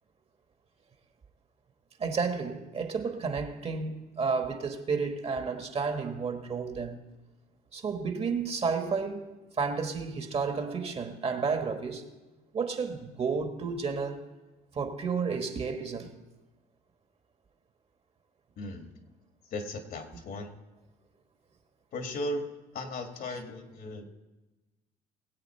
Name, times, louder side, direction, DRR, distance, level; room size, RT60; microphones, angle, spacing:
voice 1, 2.0-7.0 7.7-12.1 12.5-14.2 14.7-16.2, right 5 dB, 35° right, 1.4 m, -31 dB
voice 2, 18.6-18.9 19.5-20.5 21.9-24.0, left 1 dB, 60° left, 1.9 m, -36 dB
21.0 x 8.1 x 4.4 m
cardioid pair, 110°, 17 cm